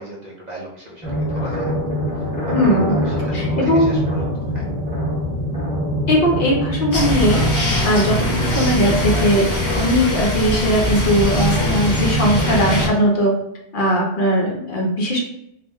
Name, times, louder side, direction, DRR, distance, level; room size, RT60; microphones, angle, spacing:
voice 1, 0.0-1.7 2.1-4.3 4.5-4.6, right 1 dB, 50° right, -3 dB, 0.6 m, -37 dB
sound 1, 1.0-12.8, equal, 10° left, 1.0 m, -25 dB
voice 2, 2.5-3.0 3.3-4.0 6.1-7.4 7.8-13.3 13.7-15.2, equal, 55° left, -2 dB, 0.7 m, -19 dB
sound 2, 6.9-12.9, left 1 dB, 25° left, 0.5 m, -22 dB
2.5 x 2.0 x 3.4 m, 0.79 s
omnidirectional pair, 1.1 m